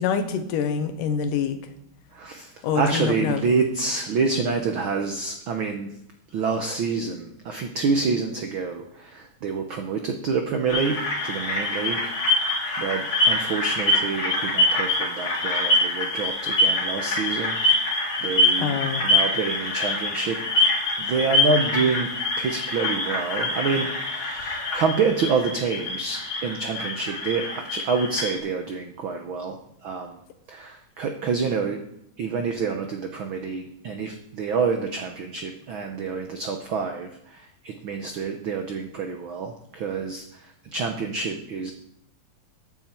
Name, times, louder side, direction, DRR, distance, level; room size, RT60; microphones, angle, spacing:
voice 1, 0.0-1.6 2.6-3.4 18.6-19.0, left 7 dB, 90° left, 8 dB, 2.6 m, -25 dB
voice 2, 2.1-6.0 6.3-12.1 12.8-17.6 17.9-20.4 21.0-22.1 22.4-30.2 30.5-31.8 32.2-41.7, right 4 dB, 80° right, 5 dB, 1.1 m, -27 dB
sound 1, 10.7-28.4, left 2 dB, 45° left, 2.8 m, -25 dB
14.0 x 8.9 x 4.4 m, 0.76 s
omnidirectional pair, 3.6 m